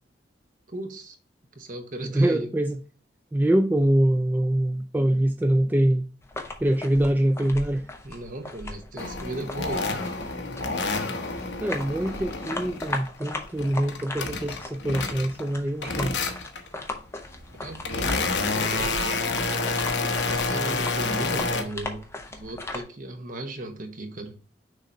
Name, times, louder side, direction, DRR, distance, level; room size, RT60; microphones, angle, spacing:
voice 1, 0.7-1.2 1.5-2.5 8.0-10.1 17.5-19.2 20.2-24.4, right 1 dB, 45° right, 1.1 m, -36 dB
voice 2, 2.0-2.8 3.3-6.1 6.6-7.9 11.6-16.1, right 1 dB, 10° right, 0.3 m, -24 dB
sound 1, 6.2-22.8, left 2 dB, 15° left, 0.8 m, -38 dB
sound 2, 9.0-13.1 13.4-15.5 15.8-16.7 17.3-21.6, left 3 dB, 70° left, 1.0 m, -29 dB
6.4 x 3.0 x 5.1 m
head